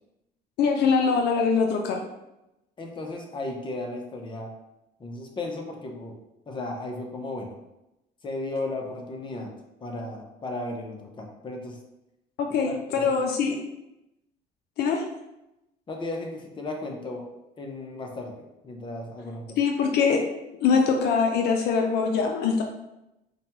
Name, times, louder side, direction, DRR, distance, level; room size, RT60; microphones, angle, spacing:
voice 1, 0.6-2.1 12.4-13.6 14.8-15.0 19.6-20.2 20.6-22.6, left 5 dB, 75° left, 3 dB, 0.5 m, -23 dB
voice 2, 2.8-4.5 5.0-6.2 6.5-7.6 8.2-9.5 9.8-11.8 12.7-13.2 15.9-17.2 17.6-19.6, left 2 dB, 30° left, 1 dB, 0.7 m, -35 dB
5.0 x 2.2 x 3.0 m, 0.92 s
cardioid pair, 110°, 17 cm